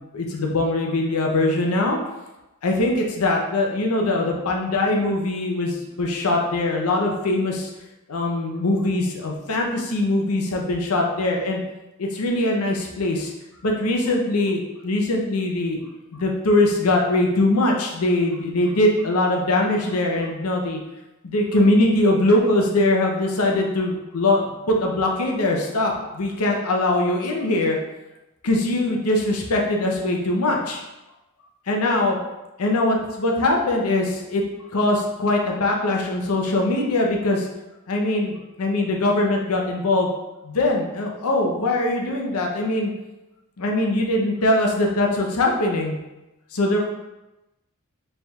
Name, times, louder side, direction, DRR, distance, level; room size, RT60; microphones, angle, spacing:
voice 1, 0.0-2.0 2.6-7.7 8.1-11.6 12.0-13.3 13.6-15.8 16.1-20.8 21.2-27.8 28.4-30.8 31.7-32.2 32.6-34.4 34.7-37.5 37.9-40.1 40.4-42.9 43.6-46.0 46.5-46.8, left 2 dB, 85° left, 0 dB, 0.7 m, -22 dB
3.4 x 2.3 x 4.2 m, 1.0 s
head